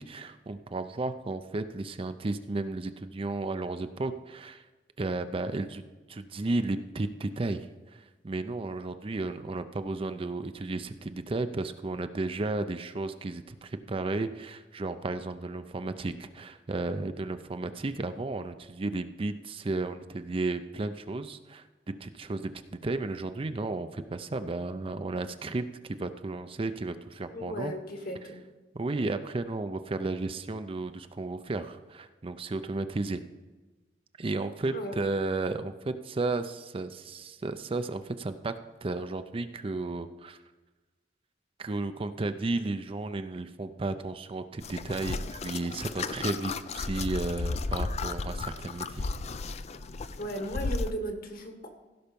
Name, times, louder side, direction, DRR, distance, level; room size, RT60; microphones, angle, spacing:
voice 1, 0.0-4.6 5.0-5.8 6.1-21.7 22.0-22.5 22.8-27.7 28.7-33.2 34.2-38.5 38.8-40.4 41.6-49.1, right 2 dB, 30° right, 10 dB, 0.5 m, -33 dB
voice 2, 27.3-28.4 34.7-34.9 50.2-51.7, equal, 55° left, 5 dB, 1.7 m, -36 dB
sound 1, 44.6-50.9, left 3 dB, 40° left, 0.4 m, -34 dB
16.0 x 5.6 x 5.2 m, 1.3 s
head